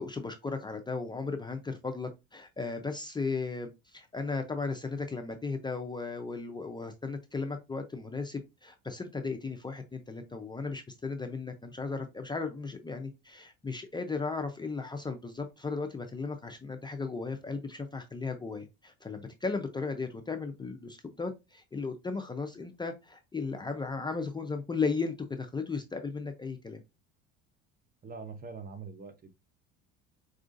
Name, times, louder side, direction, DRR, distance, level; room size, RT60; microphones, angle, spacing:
voice 1, 0.0-26.8, left 4 dB, 15° left, 0.5 m, -36 dB
voice 2, 28.0-29.3, right 4 dB, 30° right, 0.8 m, -43 dB
4.6 x 2.4 x 2.5 m
supercardioid pair, 90°, 31 cm